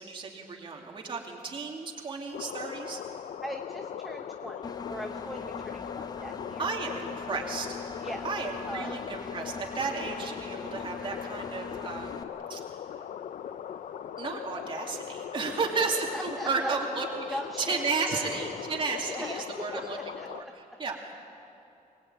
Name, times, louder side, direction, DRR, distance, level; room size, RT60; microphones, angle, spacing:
voice 1, 0.0-3.0 6.6-7.7 8.2-12.6 14.2-20.0 20.3-21.1, right 4 dB, 35° right, 0 dB, 2.7 m, -33 dB
sound 1, 2.3-20.4, left 9 dB, 70° left, 0.7 m, -40 dB
voice 2, 3.4-6.7 8.0-8.3 8.7-9.0 16.1-16.8 17.3-18.4 19.1-20.5, equal, ahead, 4 dB, 0.8 m, -40 dB
Engine, 4.6-12.2, left 4 dB, 30° left, 0.9 m, -42 dB
23.5 x 20.0 x 9.1 m, 2.8 s
wide cardioid pair, 175°, 14 cm